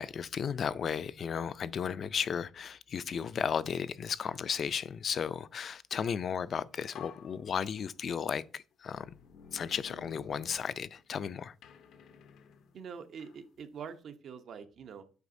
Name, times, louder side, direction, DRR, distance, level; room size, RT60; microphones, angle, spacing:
voice 1, 0.0-9.1 9.5-11.5, left 7 dB, 55° left, 0.3 m, -34 dB
sound 1, 6.4-6.5 6.9-8.2 8.9-11.2 11.6-13.4, left 7 dB, 80° left, 0.7 m, -53 dB
voice 2, 12.7-15.0, right 6 dB, 65° right, 0.7 m, -45 dB
8.1 x 4.9 x 2.6 m
cardioid pair, 90°, 0 cm